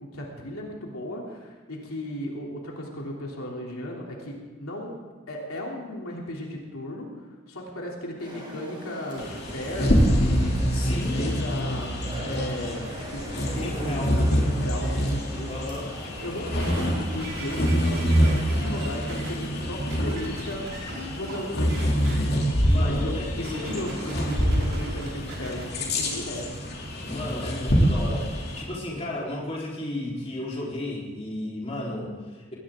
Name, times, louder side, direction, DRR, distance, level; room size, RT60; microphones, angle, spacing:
voice 1, 0.0-5.0 5.3-7.2 7.5-14.1 14.4-15.6 16.0-20.7 21.1-21.8 22.7-26.5, left 1 dB, 85° left, -2 dB, 3.1 m, -35 dB
sound 1, 8.2-17.6, right 1 dB, 20° right, 4.4 m, -41 dB
Bird vocalization bird call bird song, 9.2-28.6, equal, 50° left, 2.8 m, -26 dB
voice 2, 10.7-11.3 13.5-14.2 15.5-15.9 22.6-24.0 27.0-32.5, left 1 dB, 30° left, -5 dB, 4.0 m, -33 dB
sound 2, 16.6-19.3 19.9-21.4 21.7-22.1 23.4-25.6 26.3-26.4, right 1 dB, 80° right, 5.3 m, -39 dB
21.0 x 18.5 x 3.8 m, 1.3 s
head